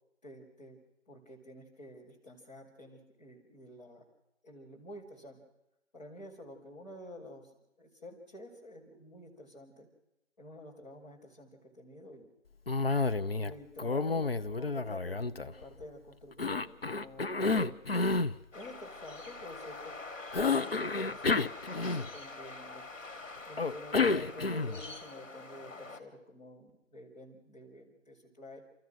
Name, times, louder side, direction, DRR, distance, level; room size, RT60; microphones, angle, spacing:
voice 1, 0.2-0.8 1.1-4.0 4.4-5.4 5.9-7.5 7.8-9.9 10.4-12.3 13.3-17.8 18.5-20.0 20.5-21.4 21.7-22.8 23.5-28.6, left 1 dB, 35° left, -5 dB, 5.0 m, -50 dB
Cough, 12.7-13.5 13.8-15.8 16.4-18.4 20.3-22.3 23.6-24.9, left 3 dB, 50° left, 0.7 m, -30 dB
sound 1, 18.5-26.0, left 3 dB, 70° left, 2.9 m, -45 dB
30.0 x 14.5 x 6.2 m, 0.90 s
figure-of-eight pair, 165°, 38 cm